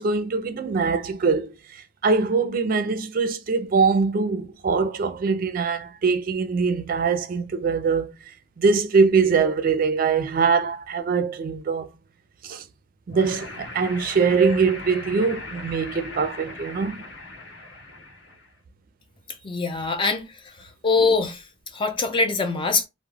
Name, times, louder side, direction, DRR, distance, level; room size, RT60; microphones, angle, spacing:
voice 1, 0.0-11.9 12.4-12.6 13.1-17.0, right 5 dB, 50° right, 0.4 m, -23 dB
sound 1, 13.1-18.5, left 2 dB, 85° left, 1.0 m, -39 dB
voice 2, 19.4-20.2 20.8-21.4 21.7-22.9, left 4 dB, 30° left, 0.5 m, -22 dB
2.2 x 2.0 x 3.2 m
head